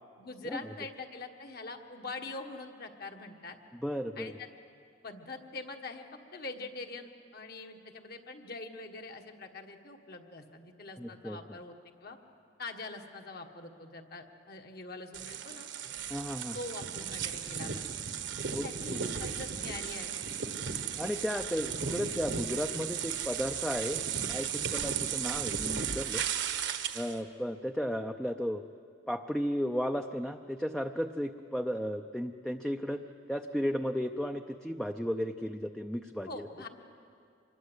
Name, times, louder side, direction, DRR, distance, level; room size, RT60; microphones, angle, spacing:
voice 1, 0.2-3.6 4.2-4.5 5.0-11.7 12.0-12.2 12.6-15.7 16.5-17.8 18.6-20.2 24.6-24.9 36.3-36.7, left 3 dB, 55° left, 4 dB, 1.6 m, -44 dB
voice 2, 3.8-4.3 11.0-11.6 16.1-16.6 18.5-19.0 21.0-24.0 24.3-26.2 26.9-28.6 29.1-33.0 33.3-36.4, equal, ahead, 5 dB, 0.5 m, -34 dB
sound 1, 15.1-27.2, right 7 dB, 70° right, 1.2 m, -35 dB
26.0 x 21.5 x 8.1 m, 2.4 s
head